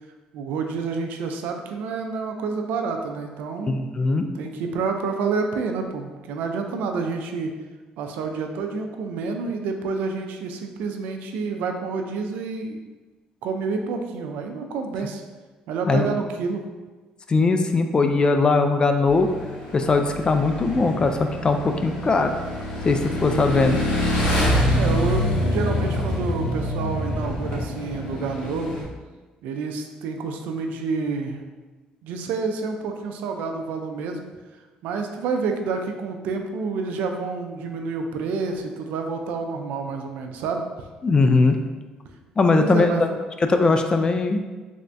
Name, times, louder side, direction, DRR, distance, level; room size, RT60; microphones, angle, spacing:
voice 1, 0.3-3.7 4.3-7.5 8.0-12.8 13.4-15.2 15.7-16.6 24.6-28.8 29.4-31.4 32.0-34.2 34.8-40.7 42.5-43.2, right 4 dB, 85° right, 4 dB, 0.4 m, -28 dB
voice 2, 3.7-4.3 15.9-16.1 17.3-19.3 19.7-22.3 22.8-23.8 41.0-41.6 42.4-42.9 43.5-44.4, left 3 dB, 30° left, 6 dB, 0.3 m, -20 dB
Motorcycle / Engine, 19.1-28.8, left 1 dB, 75° left, 1.0 m, -26 dB
3.4 x 2.5 x 3.3 m, 1.3 s
cardioid pair, 95°, 3 cm